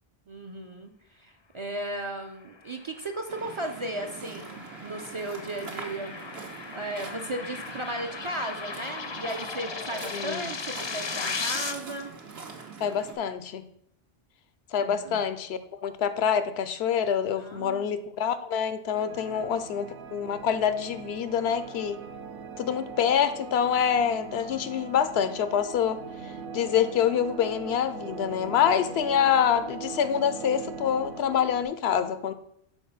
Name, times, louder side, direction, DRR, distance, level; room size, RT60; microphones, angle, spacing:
voice 1, 0.3-6.1 6.7-12.1 14.8-15.2 17.4-18.0 19.3-19.4, right 1 dB, 45° right, 5 dB, 0.4 m, -36 dB
sound 1, 2.9-11.7, left 4 dB, 40° left, 0.4 m, -37 dB
Waves surf, 3.3-13.1, right 4 dB, 80° right, 1.2 m, -43 dB
voice 2, 10.1-10.5 12.8-13.7 14.7-22.0 22.6-26.0 26.5-32.3, left 8 dB, 90° left, 12 dB, 0.8 m, -26 dB
sound 2, 18.9-31.6, right 5 dB, 65° right, 0.8 m, -41 dB
5.8 x 4.2 x 5.5 m, 0.72 s
omnidirectional pair, 1.0 m